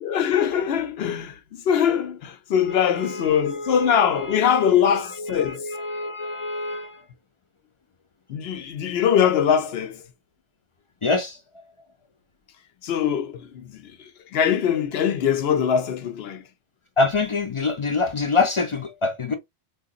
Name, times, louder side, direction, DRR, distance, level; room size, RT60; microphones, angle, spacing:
voice 1, 0.0-5.7 8.3-10.0 12.8-16.4, left 8 dB, 65° left, 0.8 m, -22 dB
voice 2, 2.7-7.0 11.0-11.4 17.0-19.3, left 3 dB, 45° left, 0.4 m, -26 dB
3.7 x 2.5 x 2.3 m
omnidirectional pair, 1.2 m